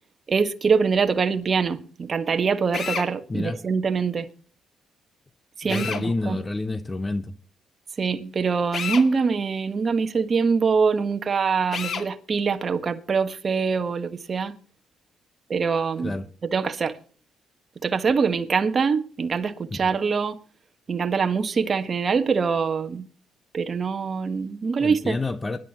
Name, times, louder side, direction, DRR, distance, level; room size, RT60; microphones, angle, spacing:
voice 1, 0.3-4.3 5.6-6.4 8.0-14.5 15.5-16.1 16.5-17.0 17.8-20.4 20.9-23.1 23.5-25.2, right 5 dB, 40° right, 1.5 m, -24 dB
Drill, 2.7-3.1 5.7-6.1 8.7-9.1 11.7-12.1, left 6 dB, 55° left, 2.2 m, -29 dB
voice 2, 3.3-3.6 5.6-7.3 16.0-16.3 19.7-19.8 24.8-25.6, left 2 dB, 20° left, 0.9 m, -28 dB
24.0 x 11.5 x 3.0 m
cardioid pair, 90°, 0 cm